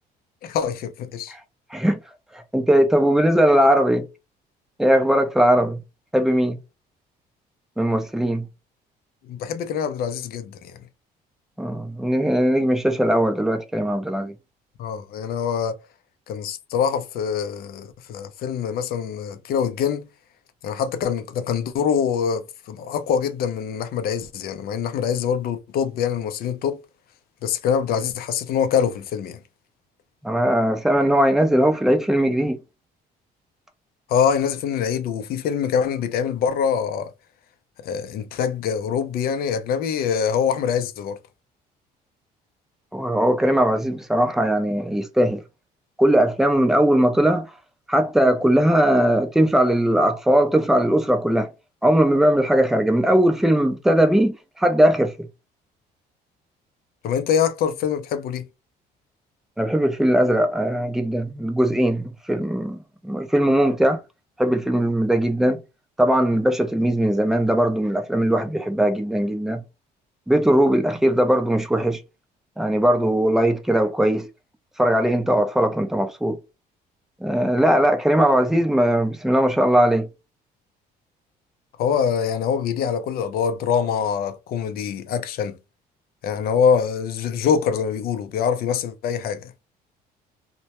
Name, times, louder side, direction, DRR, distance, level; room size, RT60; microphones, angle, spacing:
voice 1, 0.4-1.3 9.2-10.8 14.8-15.8 16.3-20.1 20.6-26.8 27.4-29.4 34.1-37.1 37.8-41.2 57.0-58.4 81.8-85.6 86.2-89.5, left 7 dB, 65° left, 0.5 m, -24 dB
voice 2, 2.3-4.1 4.8-5.8 6.1-6.6 7.8-8.5 11.6-14.3 30.2-32.6 42.9-45.4 46.0-47.5 47.9-51.5 51.8-55.3 59.6-64.0 64.4-65.6 66.0-69.6 70.3-72.0 72.6-74.3 74.8-76.4 77.2-80.1, right 1 dB, ahead, 0.4 m, -19 dB
2.1 x 2.1 x 2.8 m
cardioid pair, 110°, 17 cm